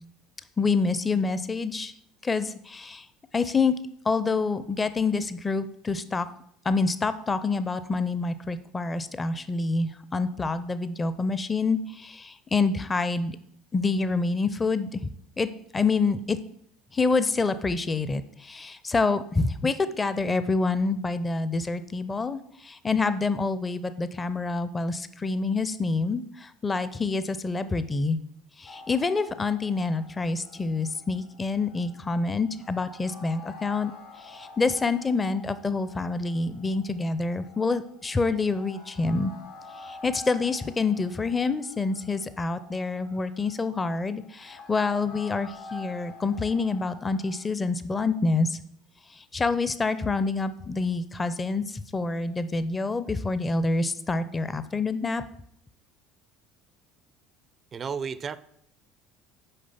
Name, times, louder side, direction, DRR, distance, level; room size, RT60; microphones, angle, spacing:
voice 1, 0.6-1.9 2.2-3.1 3.3-3.7 4.0-6.3 6.6-13.4 13.7-15.1 15.4-16.4 16.9-28.2 28.6-33.9 34.2-39.3 39.8-48.6 49.1-55.2, left 3 dB, 25° left, 13 dB, 0.6 m, -27 dB
sound 1, 28.7-47.5, left 3 dB, 75° left, 1.7 m, -48 dB
voice 2, 57.7-58.4, right 6 dB, 35° right, 17 dB, 0.4 m, -32 dB
6.7 x 5.1 x 5.7 m, 0.70 s
hypercardioid pair, 65°, 0 cm